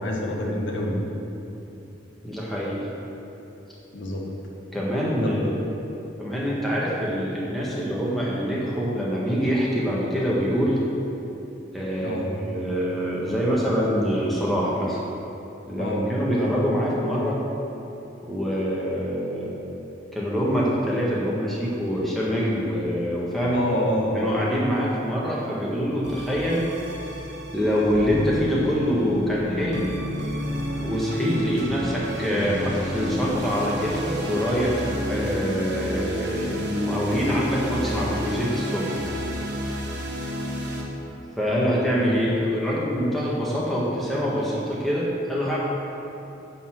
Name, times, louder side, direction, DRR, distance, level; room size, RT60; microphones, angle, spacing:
voice 1, 0.0-0.9 3.9-4.3 5.2-5.5 12.0-12.3 15.8-16.0 23.5-24.4 41.5-41.8, left 1 dB, 85° left, -2 dB, 1.6 m, -27 dB
voice 2, 2.2-2.8 4.7-5.6 6.2-10.8 11.7-15.0 15.7-17.4 18.2-19.5 20.1-23.6 24.1-26.6 27.5-29.8 30.8-39.0 41.4-45.6, equal, ahead, -7 dB, 1.5 m, -25 dB
sound 1, 26.0-40.8, equal, 65° right, 1.5 m, -31 dB
10.0 x 4.2 x 7.6 m, 2.9 s
head